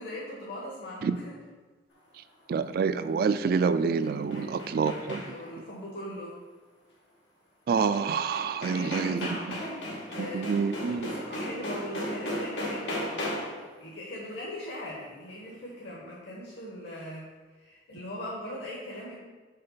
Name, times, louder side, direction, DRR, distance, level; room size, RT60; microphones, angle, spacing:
voice 1, 0.0-1.4 4.3-6.4 8.7-17.3 17.5-19.2, left 1 dB, 65° left, -5 dB, 1.2 m, -40 dB
voice 2, 2.5-5.2 7.7-9.2 10.2-11.1, right 5 dB, 55° right, 12 dB, 0.3 m, -27 dB
sound 1, 3.8-5.6 7.9-8.0 8.3-13.7, left 1 dB, 90° left, 1.5 m, -36 dB
5.5 x 3.8 x 5.7 m, 1.4 s
head